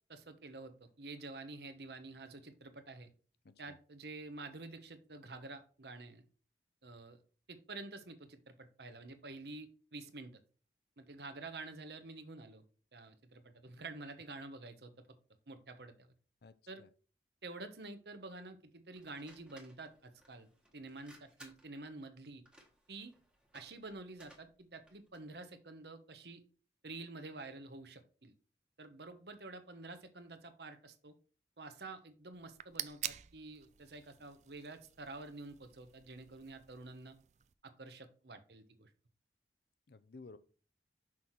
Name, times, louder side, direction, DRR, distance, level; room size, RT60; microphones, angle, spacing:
voice 1, 0.1-3.1 3.6-6.2 6.8-7.2 7.5-10.4 11.0-12.6 12.9-14.9 15.5-16.1 16.7-16.8 17.4-22.4 22.9-23.1 23.5-26.4 26.8-28.3 28.8-31.1 31.6-37.2 37.6-38.9, right 3 dB, 70° right, 1.1 m, -49 dB
voice 2, 3.4-3.8 16.4-16.9 39.9-40.4, left 3 dB, 65° left, 0.6 m, -55 dB
sound 1, 18.9-25.3, equal, 5° right, 1.2 m, -62 dB
sound 2, 32.3-37.5, right 12 dB, 40° right, 0.4 m, -48 dB
6.1 x 5.8 x 4.6 m
head